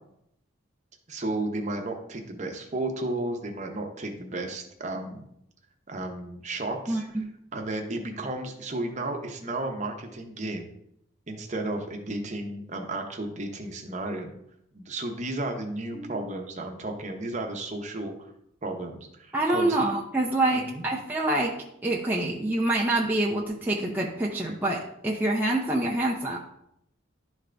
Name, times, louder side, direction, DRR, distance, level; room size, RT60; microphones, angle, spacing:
voice 1, 1.1-5.2 5.9-7.2 7.5-10.7 11.3-14.3 14.7-18.3 18.6-19.8 20.7-20.8, right 2 dB, 35° right, 3 dB, 0.8 m, -33 dB
voice 2, 6.9-7.3 15.9-16.2 19.3-21.6 21.8-26.4, right 2 dB, 10° right, -3 dB, 0.6 m, -26 dB
11.5 x 3.8 x 3.4 m, 0.77 s
head